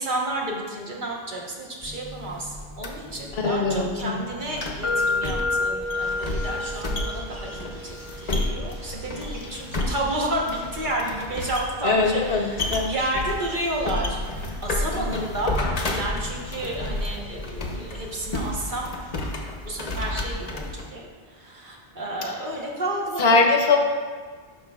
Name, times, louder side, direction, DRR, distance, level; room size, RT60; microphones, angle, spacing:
voice 1, 0.0-15.6 15.9-18.9 19.6-23.5, right 1 dB, 50° right, -3 dB, 1.2 m, -31 dB
sound 1, 1.8-20.9, left 2 dB, 40° left, 0.8 m, -32 dB
voice 2, 3.3-4.1 11.8-12.9 14.9-15.2 22.2-22.3 23.2-23.8, left 3 dB, 80° left, 2 dB, 1.0 m, -22 dB
sound 2, 4.8-12.7, left 3 dB, 20° right, 0.6 m, -32 dB
sound 3, 5.8-19.3, equal, 85° right, 2.4 m, -43 dB
10.5 x 6.1 x 2.3 m, 1.5 s
omnidirectional pair, 1.1 m